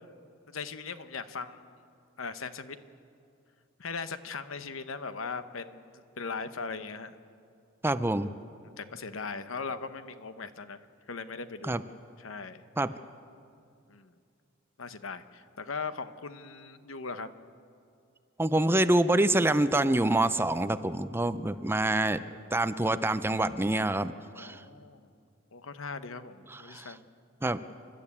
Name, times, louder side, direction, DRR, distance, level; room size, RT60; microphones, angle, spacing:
voice 1, 0.5-1.7 2.2-2.8 3.8-5.9 6.2-7.1 8.8-11.8 12.2-12.6 13.9-14.1 14.8-17.3 24.4-25.1 25.5-27.0, left 4 dB, 80° left, 11 dB, 1.0 m, -39 dB
voice 2, 7.8-8.3 11.6-11.8 12.8-12.9 18.4-22.2 22.5-24.6 26.5-26.9 27.4-27.6, right 1 dB, 10° right, 12 dB, 0.5 m, -26 dB
29.5 x 12.0 x 8.5 m, 2.4 s
head